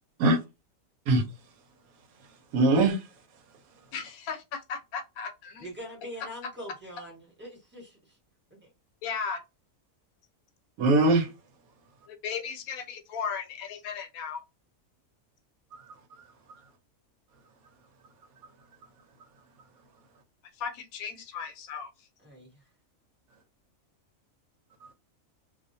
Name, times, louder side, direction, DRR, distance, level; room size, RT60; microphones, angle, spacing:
voice 1, 1.1-1.5 1.9-3.9 10.8-11.3 15.7-16.6 18.4-18.9 19.3-20.0 24.8-24.9, right 2 dB, 85° right, 1.1 m, -27 dB
voice 2, 3.9-5.7 9.0-9.4 12.1-14.4 20.6-21.9, left 6 dB, 85° left, 1.1 m, -36 dB
voice 3, 5.6-8.2 8.5-8.7 22.2-22.6, equal, 10° right, 1.1 m, -43 dB
2.4 x 2.4 x 2.6 m
omnidirectional pair, 1.5 m